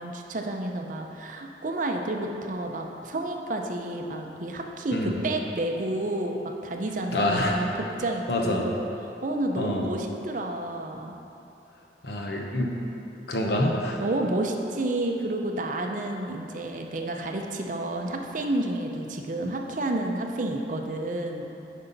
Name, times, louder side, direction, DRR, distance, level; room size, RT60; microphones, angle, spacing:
voice 1, 0.0-11.1 14.0-21.5, right 1 dB, 45° right, 3 dB, 0.6 m, -30 dB
voice 2, 7.1-7.7 8.3-8.7 9.6-9.9 12.0-12.7 13.3-14.0, left 1 dB, 65° left, 0 dB, 0.9 m, -26 dB
9.5 x 5.5 x 4.0 m, 2.9 s
head